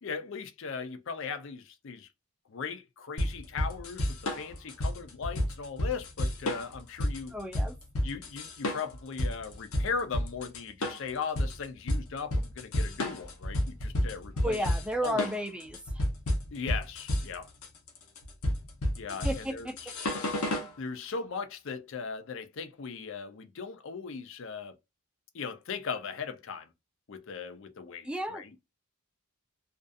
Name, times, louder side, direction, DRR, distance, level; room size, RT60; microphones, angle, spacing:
voice 1, 0.0-2.1 2.5-7.3 8.0-14.6 15.0-15.2 16.5-17.5 19.0-19.9 20.8-24.8 25.3-26.7 27.1-28.5, left 5 dB, 55° left, 0.5 m, -38 dB
sound 1, 3.2-20.7, left 1 dB, 80° left, 0.8 m, -31 dB
voice 2, 7.3-7.7 14.4-16.0 19.2-19.9 28.0-28.4, equal, 5° right, 0.3 m, -33 dB
2.5 x 2.3 x 2.5 m
head